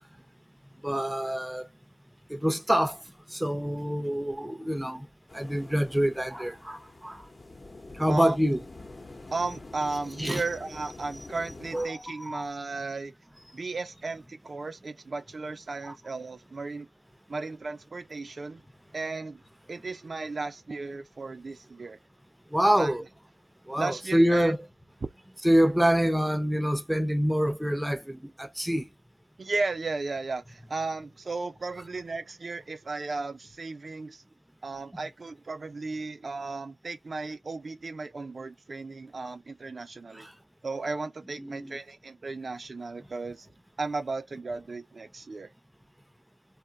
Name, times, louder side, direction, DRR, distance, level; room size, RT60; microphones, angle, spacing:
voice 1, 0.8-1.7 2.3-5.1 5.3-7.3 7.9-8.6 10.2-10.4 11.7-12.5 15.8-15.9 22.5-23.0 23.7-24.6 25.4-28.9 40.1-40.4 41.4-41.8, equal, 5° right, 0.6 m, -26 dB
sound 1, 5.3-11.9, left 2 dB, 45° left, 0.9 m, -46 dB
voice 2, 9.3-13.1 13.5-16.9 17.3-18.6 18.9-19.4 19.7-22.0 22.8-22.9 23.8-24.5 29.4-34.2 34.6-40.3 40.6-43.5 43.8-45.5, right 3 dB, 55° right, 0.4 m, -35 dB
2.2 x 2.1 x 3.8 m
cardioid pair, 50°, 0 cm